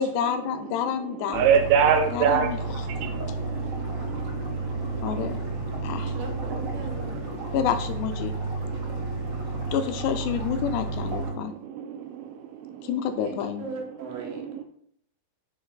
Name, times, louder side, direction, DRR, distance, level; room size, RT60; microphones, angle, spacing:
voice 1, 0.0-1.4 2.1-2.8 5.0-5.4 5.8-6.1 7.5-8.3 9.7-11.5 12.8-13.7, left 8 dB, 80° left, 7 dB, 2.5 m, -28 dB
sound 1, 1.3-11.3, right 2 dB, 50° right, 1.4 m, -32 dB
voice 2, 1.3-2.5 2.9-5.3 5.7-6.2 7.4-7.5 8.6-9.6 11.3-12.9 14.4-14.6, right 7 dB, 85° right, 3 dB, 3.0 m, -27 dB
voice 3, 6.1-7.2 13.2-14.4, right 3 dB, 65° right, 1 dB, 2.4 m, -38 dB
14.0 x 5.6 x 2.3 m, 0.67 s
omnidirectional pair, 5.2 m